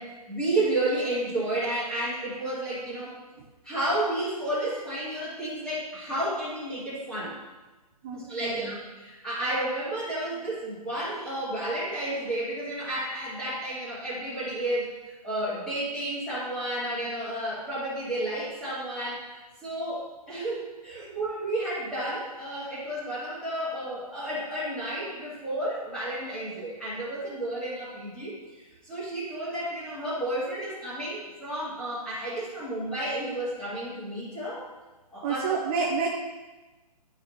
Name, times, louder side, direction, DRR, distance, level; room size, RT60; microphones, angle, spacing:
voice 1, 0.0-3.1 3.6-7.4 8.1-19.2 19.6-34.6 35.1-35.4, right 1 dB, 5° left, -10 dB, 2.1 m, -31 dB
voice 2, 8.0-8.7 35.2-36.1, right 5 dB, 15° right, -3 dB, 0.4 m, -29 dB
11.0 x 5.0 x 3.0 m, 1.2 s
hypercardioid pair, 165°, 20 cm